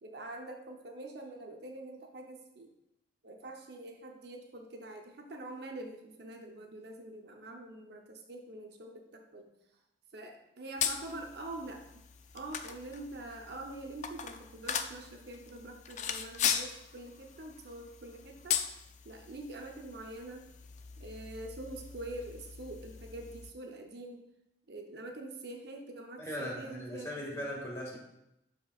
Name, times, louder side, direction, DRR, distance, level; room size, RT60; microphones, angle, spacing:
voice 1, 0.0-2.7 3.2-9.5 10.1-12.0 12.3-18.6 19.0-20.4 21.0-24.2 24.7-27.5, right 2 dB, 60° right, 3 dB, 0.8 m, -45 dB
sound 1, 10.8-23.5, left 8 dB, 40° left, 0.4 m, -39 dB
voice 2, 26.2-28.0, equal, 15° left, -3 dB, 1.8 m, -39 dB
12.0 x 4.6 x 2.4 m, 0.84 s
head